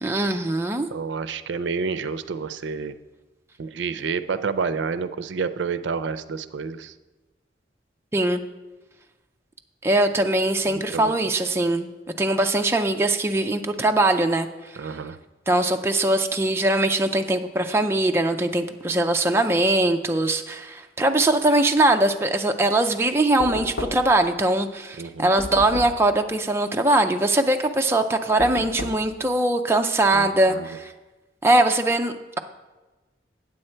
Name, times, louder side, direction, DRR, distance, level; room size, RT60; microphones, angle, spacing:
voice 1, 0.0-0.9 8.1-8.4 9.8-11.9 12.2-14.5 15.5-30.9 31.4-32.4, right 2 dB, 15° right, 5 dB, 0.4 m, -21 dB
voice 2, 0.9-3.0 3.6-6.9 10.6-11.1 14.8-15.2 25.0-25.3 30.1-30.8, right 5 dB, 80° right, 14 dB, 0.4 m, -29 dB
Knock, 23.4-24.3 25.4-26.1 28.4-29.1, left 2 dB, 60° left, 0.7 m, -33 dB
8.8 x 7.6 x 4.4 m, 1.2 s
head